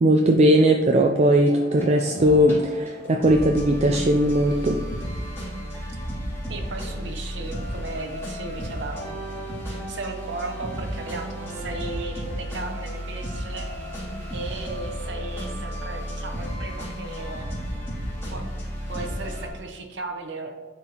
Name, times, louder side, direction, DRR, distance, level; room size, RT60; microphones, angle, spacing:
voice 1, 0.0-4.8, right 1 dB, 35° right, 3 dB, 0.4 m, -19 dB
sound 1, 1.1-19.5, equal, 15° left, 2.2 m, -33 dB
voice 2, 6.5-13.7 14.3-17.5 18.3-18.4 18.9-20.5, right 3 dB, 70° right, 4 dB, 0.9 m, -36 dB
9.8 x 4.4 x 2.9 m, 1.2 s
head